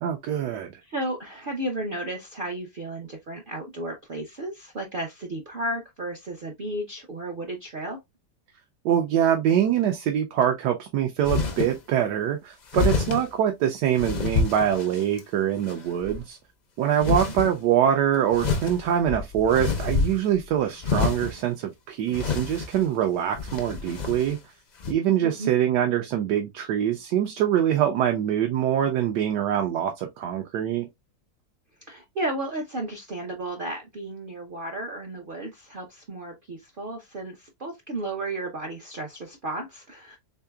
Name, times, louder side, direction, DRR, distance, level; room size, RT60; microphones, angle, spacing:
voice 1, 0.0-0.8 8.8-16.4 16.8-24.4 24.9-30.9, right 10 dB, 90° right, 1.2 m, -24 dB
voice 2, 0.8-8.0 17.0-17.3 25.2-25.5 31.9-40.2, right 1 dB, 65° right, 0.5 m, -33 dB
sound 1, 11.2-11.7 12.7-13.2 14.0-15.2 15.7-16.2 17.0-17.5 18.3-20.4 20.8-21.4 22.1-22.8 23.4-24.3 24.8-24.9, left 4 dB, 80° left, 0.4 m, -27 dB
3.7 x 3.3 x 2.2 m
omnidirectional pair, 1.8 m